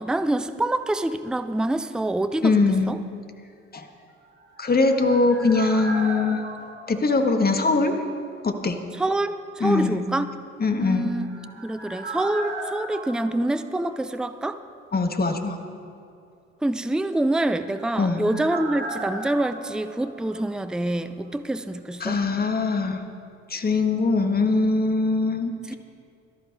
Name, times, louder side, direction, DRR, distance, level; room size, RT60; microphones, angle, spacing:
voice 1, 0.0-3.0 9.0-10.3 10.8-11.3 11.6-14.6 16.6-22.2 25.7-25.8, right 1 dB, ahead, 11 dB, 0.6 m, -26 dB
voice 2, 2.4-2.9 3.7-3.9 4.6-6.4 6.9-8.0 8.4-8.8 9.6-10.0 10.6-11.1 14.9-15.6 18.0-18.3 22.0-23.0 23.5-25.5, left 3 dB, 25° left, 5 dB, 1.7 m, -22 dB
sound 1, 4.2-8.1 8.3-8.4 10.8-14.6 14.8-14.9 17.2-21.0 21.3-21.4, right 2 dB, 30° right, 3.2 m, -37 dB
18.5 x 13.0 x 4.0 m, 2.4 s
figure-of-eight pair, 50°, 34 cm